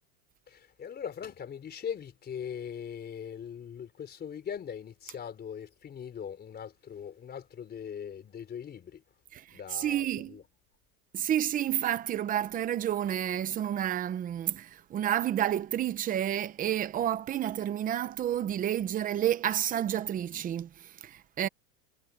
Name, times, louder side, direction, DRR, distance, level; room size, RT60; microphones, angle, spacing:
voice 1, 0.5-9.0 9.5-10.4, left 8 dB, 20° left, 4.0 m, -40 dB
voice 2, 9.3-10.4 11.1-21.5, right 11 dB, 15° right, 0.7 m, -30 dB
supercardioid pair, 155°, 47 cm